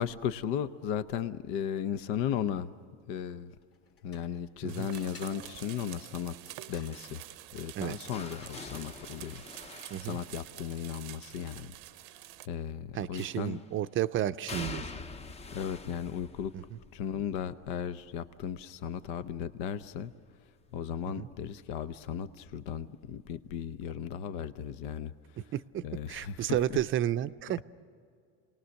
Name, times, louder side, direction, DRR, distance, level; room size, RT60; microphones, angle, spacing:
voice 1, 0.0-2.7 3.1-3.5 4.0-6.4 6.7-7.2 7.5-9.4 10.0-11.7 12.4-13.6 15.5-16.5 16.9-20.1 20.7-25.1 25.8-26.8, left 8 dB, 85° left, 12 dB, 0.8 m, -36 dB
sound 1, 3.6-4.5 4.9-9.8, left 5 dB, 40° left, 2.2 m, -58 dB
sound 2, 4.7-12.5, right 16 dB, 80° right, 0.7 m, -48 dB
sound 3, 6.9-11.0 13.2-13.8 14.5-20.3 20.6-21.0 22.3-22.4, left 4 dB, 20° left, 0.6 m, -47 dB
voice 2, 12.9-14.9 16.5-16.6 21.2-21.3 25.5-27.6, right 12 dB, 35° right, 12 dB, 0.5 m, -32 dB
28.5 x 19.0 x 6.5 m, 2.3 s
cardioid pair, 135°, 34 cm